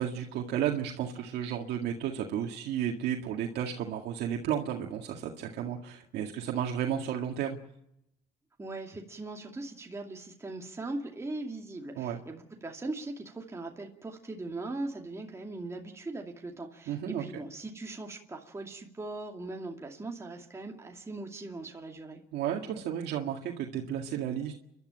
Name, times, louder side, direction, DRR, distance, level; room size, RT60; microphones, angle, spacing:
voice 1, 0.0-7.6 12.0-12.2 16.9-17.4 22.3-24.5, right 9 dB, 75° right, 1 dB, 2.0 m, -33 dB
voice 2, 8.6-22.2, right 2 dB, 15° right, 1 dB, 2.5 m, -40 dB
30.0 x 12.0 x 8.9 m, 0.82 s
cardioid pair, 110°, 17 cm